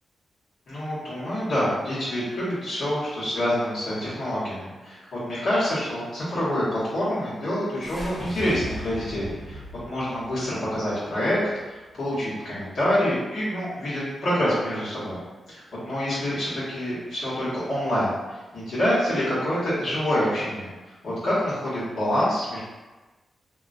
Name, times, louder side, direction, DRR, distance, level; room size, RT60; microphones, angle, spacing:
voice 1, 0.7-9.6 9.8-11.4 11.7-15.2 15.5-20.7 21.0-22.6, equal, 80° left, -10 dB, 1.2 m, -26 dB
sound 1, 7.8-12.1, equal, 10° left, 1.0 m, -39 dB
2.9 x 2.2 x 2.5 m, 1.2 s
cardioid pair, 65°, 0 cm